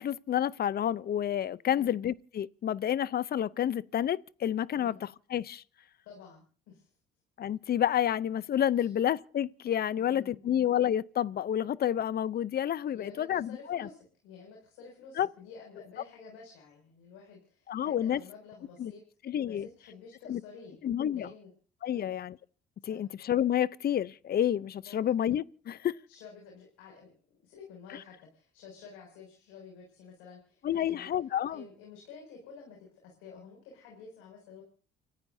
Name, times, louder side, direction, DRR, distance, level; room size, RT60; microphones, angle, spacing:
voice 1, 0.0-5.6 7.4-13.9 15.2-15.3 17.7-18.2 18.8-18.9 19.3-19.7 20.3-20.4 20.8-21.3 21.8-22.4 22.8-26.0 30.6-31.6, left 10 dB, 50° left, 0.7 m, -29 dB
voice 2, 6.0-6.9 8.7-8.9 9.9-10.5 12.9-19.0 19.4-20.8 21.1-21.5 21.9-22.1 22.9-23.0 24.9-25.2 26.1-31.1 31.5-34.6, left 5 dB, 85° left, 6.4 m, -50 dB
30.0 x 15.0 x 2.7 m
supercardioid pair, 80°, 21 cm